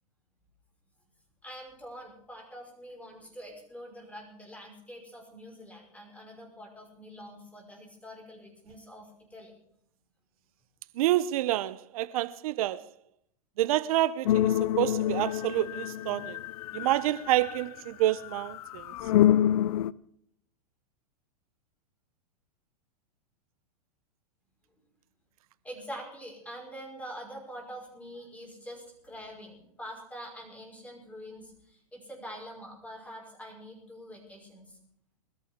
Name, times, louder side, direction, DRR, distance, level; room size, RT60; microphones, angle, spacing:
voice 1, 1.4-9.5 25.6-34.8, equal, 5° left, 5.2 m, -45 dB
voice 2, 11.0-12.8 13.6-16.4 16.7-18.9, right 14 dB, 65° right, 0.7 m, -28 dB
sound 1, 14.2-17.8 18.2-19.9, left 12 dB, 70° left, 0.5 m, -27 dB
21.0 x 13.5 x 3.7 m
hypercardioid pair, 120°, 20 cm